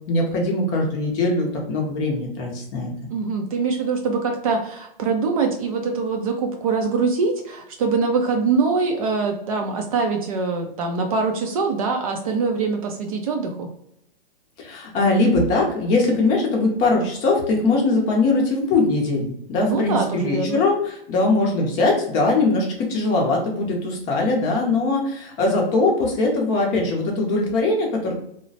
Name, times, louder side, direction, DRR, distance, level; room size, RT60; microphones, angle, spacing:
voice 1, 0.1-2.9 14.6-28.2, left 2 dB, 25° left, 0 dB, 0.6 m, -21 dB
voice 2, 3.1-13.7 19.6-20.6, right 4 dB, 40° right, 3 dB, 0.4 m, -23 dB
3.1 x 2.1 x 2.6 m, 0.73 s
hypercardioid pair, 140°, 30 cm